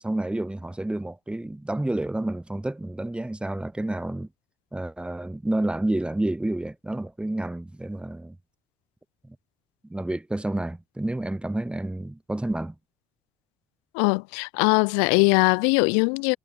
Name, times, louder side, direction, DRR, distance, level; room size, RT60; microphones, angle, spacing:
voice 1, 0.0-4.3 4.7-8.4 9.2-9.4 9.9-12.7, right 1 dB, 5° right, 0.5 m, -29 dB
voice 2, 13.9-16.4, left 38 dB, 70° left, 0.4 m, -21 dB
hypercardioid pair, 50°, 18 cm